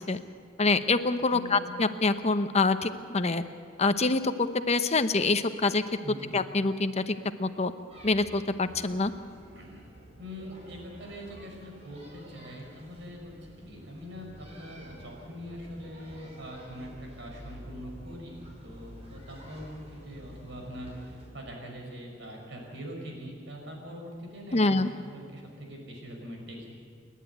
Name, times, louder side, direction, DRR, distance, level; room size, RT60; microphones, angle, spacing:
voice 1, 0.6-3.4 3.8-5.8 6.3-7.7 8.0-9.1 24.5-24.9, left 3 dB, 35° left, 10 dB, 0.9 m, -26 dB
voice 2, 1.3-1.7 6.0-6.3 9.5-9.9 10.2-26.7, equal, 70° right, 1 dB, 5.3 m, -43 dB
sound 1, 7.9-21.3, equal, 35° right, 5.7 m, -49 dB
29.5 x 11.0 x 9.3 m, 2.2 s
head